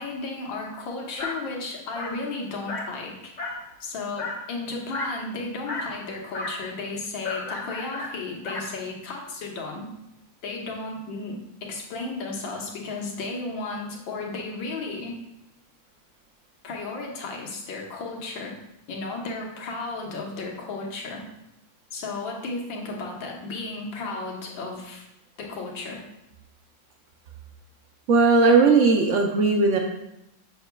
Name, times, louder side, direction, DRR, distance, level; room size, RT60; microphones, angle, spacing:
voice 1, 0.0-3.3 3.8-9.9 10.4-15.2 16.6-18.6 18.9-21.3 21.9-25.1 25.4-26.0, left 3 dB, 80° left, -1 dB, 1.8 m, -34 dB
Dog, 1.2-1.4 1.9-2.2 2.7-2.9 3.4-3.7 4.2-4.4 4.9-5.2 5.7-5.9 6.3-6.6 7.2-8.7, left 2 dB, 40° left, 0.6 m, -33 dB
voice 2, 28.1-29.8, right 4 dB, 75° right, 2 dB, 0.6 m, -18 dB
7.4 x 5.7 x 2.2 m, 0.87 s
omnidirectional pair, 2.0 m